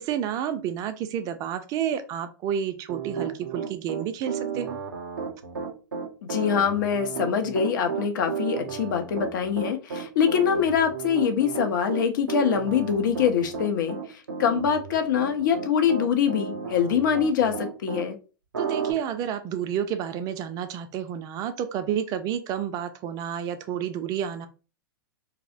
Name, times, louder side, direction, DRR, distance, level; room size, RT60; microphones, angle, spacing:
voice 1, 0.0-4.8 18.6-24.5, right 9 dB, 30° right, 9 dB, 0.3 m, -30 dB
Piano, 2.9-18.1 18.5-18.9, right 6 dB, 85° right, 0.5 m, -33 dB
voice 2, 6.2-18.2, left 7 dB, 60° left, 6 dB, 0.5 m, -24 dB
2.6 x 2.0 x 2.4 m, 0.34 s
hypercardioid pair, 105°, 12 cm